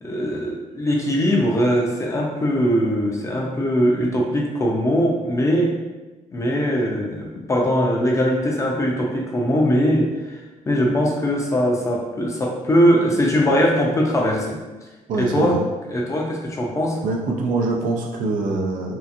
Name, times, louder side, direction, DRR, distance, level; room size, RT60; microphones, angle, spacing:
voice 1, 0.0-5.7 6.3-10.4 10.7-14.6 15.1-15.6 15.9-17.0, equal, 25° left, -1 dB, 0.5 m, -21 dB
voice 2, 15.1-15.6 17.0-19.0, right 3 dB, 80° right, -1 dB, 0.5 m, -24 dB
2.8 x 2.5 x 2.5 m, 1.2 s
cardioid pair, 115°, 13 cm